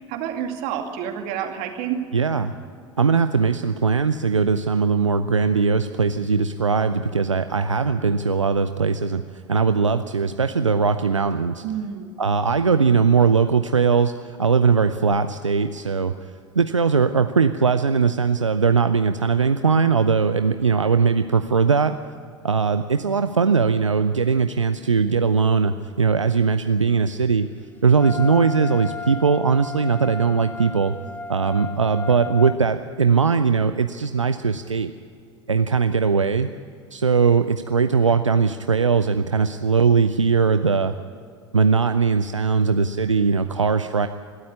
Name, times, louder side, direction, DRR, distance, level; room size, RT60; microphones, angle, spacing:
voice 1, 0.0-2.0 11.6-12.1, right 9 dB, 50° right, 5 dB, 2.4 m, -29 dB
voice 2, 2.1-2.5 3.0-9.2 9.5-11.6 12.2-16.1 16.6-22.0 22.4-27.5 27.8-30.9 31.3-34.9 35.5-36.5 36.9-40.9 41.5-44.1, right 5 dB, 85° right, 10 dB, 0.6 m, -20 dB
Wind instrument woodwind instrument, 28.0-32.6, left 4 dB, 10° left, 0.8 m, -34 dB
21.5 x 13.0 x 9.8 m, 2.3 s
figure-of-eight pair, 75°, 15 cm